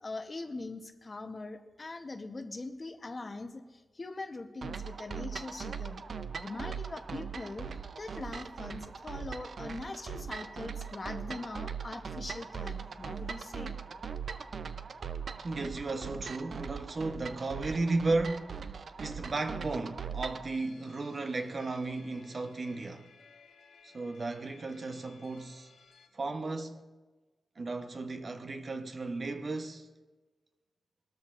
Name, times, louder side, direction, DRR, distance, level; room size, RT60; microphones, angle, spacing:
voice 1, 0.0-6.1 6.4-7.7 8.0-13.7, left 3 dB, 35° left, 0.8 m, -42 dB
sound 1, 4.6-20.5, right 6 dB, 60° right, 0.5 m, -40 dB
voice 2, 15.4-18.6 19.0-23.1 23.8-25.7 26.1-26.8 27.6-29.9, right 3 dB, 45° right, 0.8 m, -34 dB
sound 2, 20.4-26.1, left 5 dB, 90° left, 1.6 m, -59 dB
21.0 x 13.0 x 2.5 m
wide cardioid pair, 120°, 0 cm